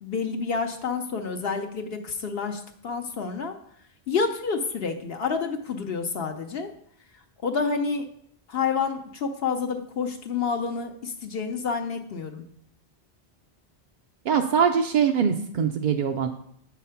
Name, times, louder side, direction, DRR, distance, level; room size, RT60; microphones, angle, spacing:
voice 1, 0.0-3.5 4.1-6.7 7.4-8.1 8.5-12.4, left 5 dB, 65° left, 4 dB, 0.9 m, -29 dB
voice 2, 14.3-16.3, right 7 dB, 60° right, 4 dB, 0.6 m, -22 dB
7.4 x 4.0 x 5.6 m, 0.69 s
omnidirectional pair, 1.1 m